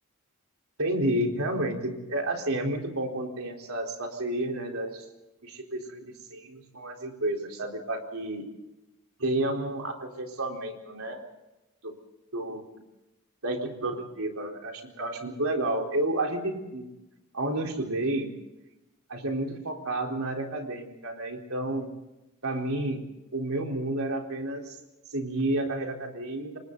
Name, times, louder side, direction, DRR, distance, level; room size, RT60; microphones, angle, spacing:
voice 1, 0.8-5.1 5.4-8.4 9.2-11.2 11.8-11.9 12.3-12.6 13.4-16.9 17.3-18.3 19.1-21.9 22.4-23.1 23.3-24.8 25.1-26.6, right 1 dB, 70° right, 2 dB, 4.1 m, -31 dB
29.0 x 25.5 x 4.0 m, 0.98 s
head